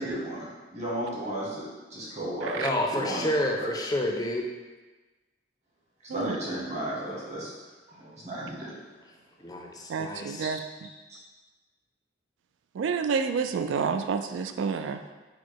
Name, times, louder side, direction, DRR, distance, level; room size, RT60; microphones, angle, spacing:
voice 1, 0.0-2.6 2.9-3.3 3.6-3.7 6.1-7.5 7.9-8.7 10.4-10.5, right 1 dB, 40° right, -6 dB, 1.2 m, -34 dB
voice 2, 2.6-4.5 9.4-10.4, left 1 dB, 20° left, 1 dB, 0.4 m, -29 dB
voice 3, 9.9-10.9 12.7-15.0, right 5 dB, 80° right, 8 dB, 0.3 m, -29 dB
4.5 x 2.0 x 4.5 m, 1.2 s
head